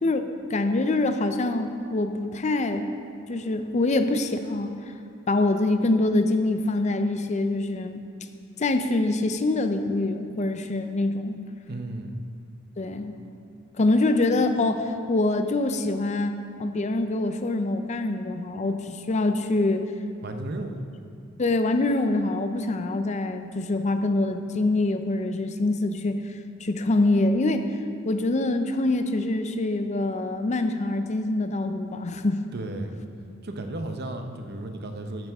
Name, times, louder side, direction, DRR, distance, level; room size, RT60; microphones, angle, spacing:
voice 1, 0.0-2.9 3.3-4.7 5.3-8.0 8.6-11.4 12.8-13.2 13.8-16.3 16.6-19.9 21.4-27.7 28.1-32.4, left 2 dB, 35° left, 8 dB, 0.5 m, -25 dB
voice 2, 11.7-12.2 20.2-20.8 32.5-32.9 33.4-35.3, right 2 dB, 55° right, 6 dB, 0.8 m, -34 dB
13.5 x 9.1 x 3.5 m, 2.4 s
head